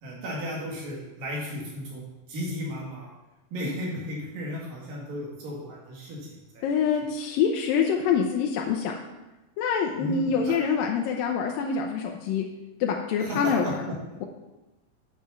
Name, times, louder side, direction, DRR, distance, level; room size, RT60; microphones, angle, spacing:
voice 1, 0.0-3.1 3.5-6.3 6.5-6.7 10.0-10.7 13.2-13.9, equal, 75° right, -3 dB, 4.0 m, -34 dB
voice 2, 6.6-8.9 9.6-12.5 12.8-13.7, left 6 dB, 90° left, 1 dB, 2.4 m, -25 dB
8.8 x 5.6 x 5.9 m, 1.0 s
omnidirectional pair, 4.0 m